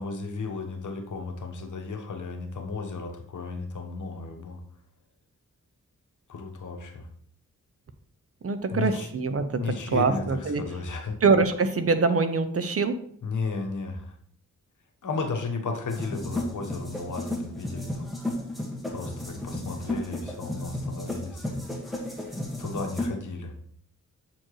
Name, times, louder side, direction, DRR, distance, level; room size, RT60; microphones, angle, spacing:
voice 1, 0.0-4.6 6.3-7.1 8.7-9.1 9.6-11.2 13.2-14.1 15.0-18.0 18.9-21.6 22.6-23.7, left 4 dB, 65° left, 4 dB, 1.1 m, -34 dB
voice 2, 8.4-10.6 11.2-12.9, right 4 dB, 45° right, 9 dB, 0.7 m, -24 dB
sound 1, 15.9-23.1, left 1 dB, ahead, 1.6 m, -33 dB
7.5 x 4.5 x 3.1 m, 0.63 s
cardioid pair, 70°, 33 cm